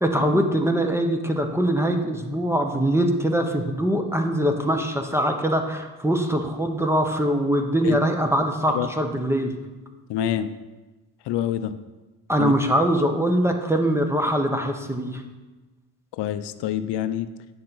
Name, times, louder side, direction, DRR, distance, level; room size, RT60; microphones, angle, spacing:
voice 1, 0.0-9.5 12.3-15.2, right 1 dB, 5° right, 4 dB, 0.6 m, -22 dB
voice 2, 10.1-10.5 11.3-11.8 12.4-12.5 16.2-17.3, left 11 dB, 75° left, 12 dB, 0.6 m, -26 dB
8.7 x 6.6 x 3.9 m, 1.2 s
cardioid pair, 125°, 42 cm